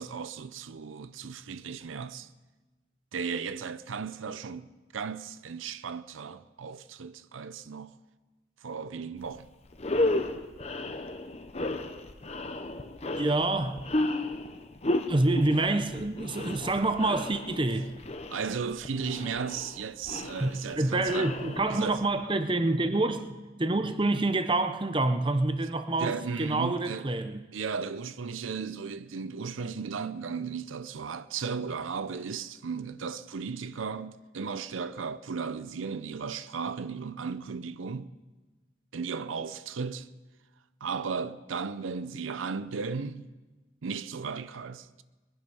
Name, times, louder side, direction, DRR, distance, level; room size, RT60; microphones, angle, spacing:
voice 1, 0.0-2.3 3.1-7.9 8.6-9.5 18.3-21.3 21.7-22.0 26.0-27.1 27.5-38.1 38.9-40.1 40.8-43.3 43.8-45.0, right 5 dB, 90° right, 0.6 m, -35 dB
sound 1, 9.2-9.4 9.7-22.1, left 2 dB, 35° left, 0.8 m, -33 dB
voice 2, 13.2-13.8 15.1-17.9 20.4-27.4, right 2 dB, 25° right, 0.7 m, -27 dB
21.0 x 11.0 x 5.6 m
head